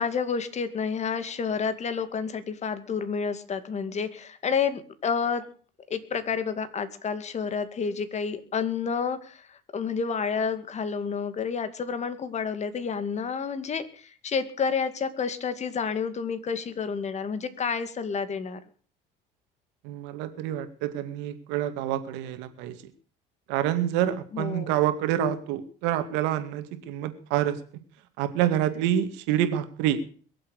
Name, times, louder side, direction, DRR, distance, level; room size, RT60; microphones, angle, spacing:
voice 1, 0.0-5.5 5.9-18.6 24.3-24.8, left 6 dB, 40° left, 11 dB, 2.3 m, -30 dB
voice 2, 19.8-22.8 23.5-27.6 28.2-30.0, right 11 dB, 85° right, 9 dB, 2.2 m, -27 dB
22.5 x 7.7 x 6.5 m, 0.43 s
supercardioid pair, 95°, 18 cm